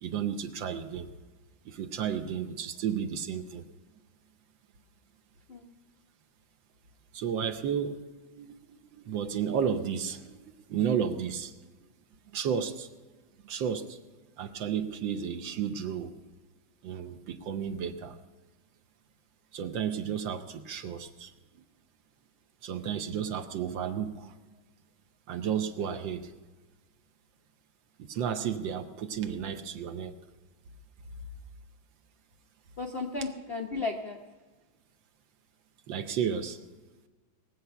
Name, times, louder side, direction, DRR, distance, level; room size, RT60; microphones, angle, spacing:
voice 1, 0.0-1.1 1.6-3.6 7.1-7.9 8.4-11.5 12.3-12.9 13.4-14.0 14.4-16.1 16.8-18.2 19.5-21.3 22.6-24.3 25.3-26.3 28.0-30.1 35.9-36.6, right 8 dB, 70° right, 8 dB, 1.5 m, -32 dB
voice 2, 32.8-34.3, left 3 dB, 55° left, 2 dB, 0.6 m, -35 dB
19.5 x 8.0 x 5.7 m, 1.3 s
omnidirectional pair, 2.2 m